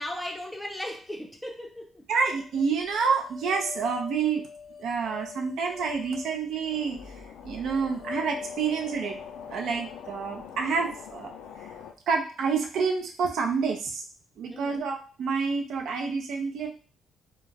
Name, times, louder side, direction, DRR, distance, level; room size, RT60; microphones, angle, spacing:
voice 1, 0.0-2.0 14.5-14.9, left 1 dB, 5° left, 3 dB, 0.5 m, -37 dB
voice 2, 2.1-4.4 4.8-7.0 7.4-9.2 9.5-11.3 12.1-14.0 14.4-16.7, right 5 dB, 75° right, 2 dB, 0.5 m, -28 dB
sound 1, 2.2-11.4, left 5 dB, 50° right, 0.8 m, -44 dB
sound 2, 6.7-11.9, left 8 dB, 85° left, 0.3 m, -45 dB
2.3 x 2.0 x 3.3 m, 0.40 s
cardioid pair, 90°, 0 cm